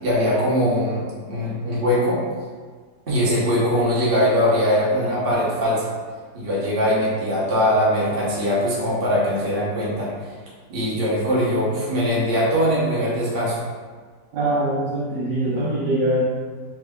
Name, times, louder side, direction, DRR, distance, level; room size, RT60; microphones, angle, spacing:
voice 1, 0.0-2.2 3.1-5.9 6.3-10.1 10.7-13.6, equal, 40° right, -8 dB, 0.9 m, -21 dB
voice 2, 14.3-16.2, right 1 dB, 80° right, -5 dB, 0.6 m, -22 dB
3.5 x 2.1 x 3.5 m, 1.5 s
omnidirectional pair, 1.9 m